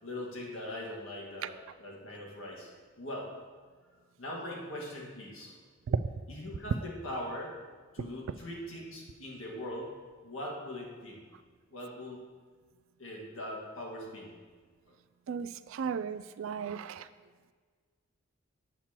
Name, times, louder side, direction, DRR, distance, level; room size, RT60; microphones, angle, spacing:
voice 1, 0.0-2.7 3.0-3.3 4.2-5.5 6.3-7.5 7.9-9.9 10.2-11.3 11.7-12.2 13.0-14.3 14.9-15.0 16.5-16.6, left 1 dB, 75° left, -2 dB, 1.7 m, -41 dB
voice 2, 15.3-17.1, right 6 dB, 70° right, 14 dB, 0.3 m, -34 dB
8.3 x 7.4 x 2.9 m, 1.5 s
head